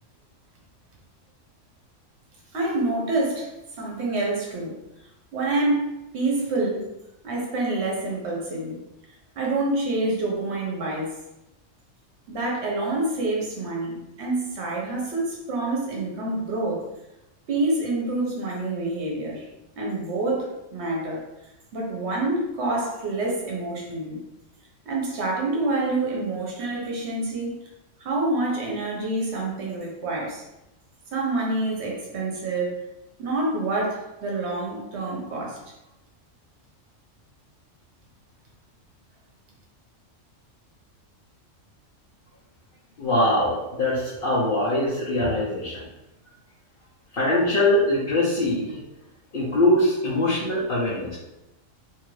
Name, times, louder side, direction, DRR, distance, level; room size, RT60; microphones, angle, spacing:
voice 1, 2.5-4.7 5.3-6.9 7.2-8.8 9.4-11.1 12.3-16.9 17.5-19.5 19.8-21.2 21.7-24.2 24.8-27.6 28.0-30.4 31.1-32.8 33.2-35.6, right 2 dB, 65° right, -2 dB, 1.1 m, -27 dB
voice 2, 43.0-45.8 47.1-48.8 49.3-51.2, left 1 dB, 55° left, -8 dB, 0.7 m, -22 dB
2.8 x 2.5 x 3.1 m, 0.93 s
omnidirectional pair, 1.3 m